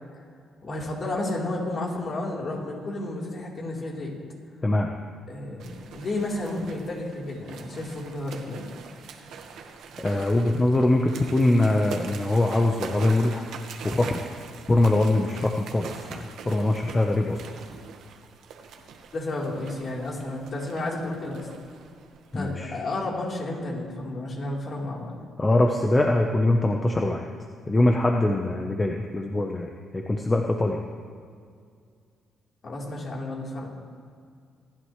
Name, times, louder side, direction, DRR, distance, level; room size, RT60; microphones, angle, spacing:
voice 1, 0.6-4.2 5.3-8.7 19.1-21.5 22.3-25.1 32.6-33.7, left 2 dB, 45° left, -3 dB, 3.9 m, -32 dB
sound 1, 5.6-22.6, right 6 dB, 80° right, 1.5 m, -43 dB
voice 2, 10.0-13.4 13.8-14.2 14.7-17.4 22.3-22.7 25.4-27.3 27.7-30.8, left 2 dB, 25° left, 2 dB, 1.0 m, -23 dB
26.5 x 11.0 x 3.3 m, 2.2 s
cardioid pair, 90°, 0 cm